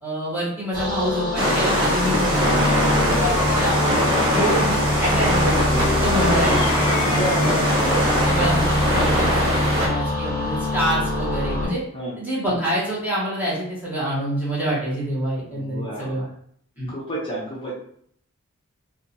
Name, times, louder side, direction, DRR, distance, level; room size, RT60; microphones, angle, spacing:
voice 1, 0.0-7.6 8.2-11.8 12.2-16.2 16.8-16.9, right 1 dB, 10° right, -8 dB, 0.8 m, -27 dB
sound 1, 0.7-11.7, left 1 dB, 40° right, 1.3 m, -25 dB
sound 2, 1.4-9.9, equal, 65° right, 0.8 m, -22 dB
sound 3, 1.7-4.6 5.6-8.7, left 5 dB, 85° left, 0.4 m, -31 dB
voice 2, 2.4-3.0 7.2-8.1 11.9-12.2 15.5-16.3 16.9-17.7, equal, 25° left, -5 dB, 0.5 m, -30 dB
2.6 x 2.2 x 2.7 m, 0.66 s
head